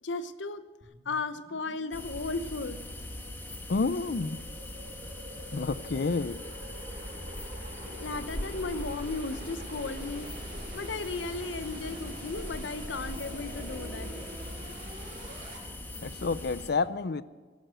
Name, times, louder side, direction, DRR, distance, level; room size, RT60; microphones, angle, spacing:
voice 1, 0.0-0.6 1.0-2.8 7.8-10.3 10.7-14.1, left 3 dB, 80° left, 11 dB, 0.9 m, -35 dB
sound 1, 0.8-15.6, right 1 dB, 45° right, 3.0 m, -47 dB
sound 2, 1.9-16.7, left 1 dB, 10° left, 1.5 m, -41 dB
voice 2, 3.7-4.4 5.5-6.4 16.0-17.2, left 4 dB, 60° left, 16 dB, 0.5 m, -29 dB
18.0 x 11.5 x 6.3 m, 1.5 s
head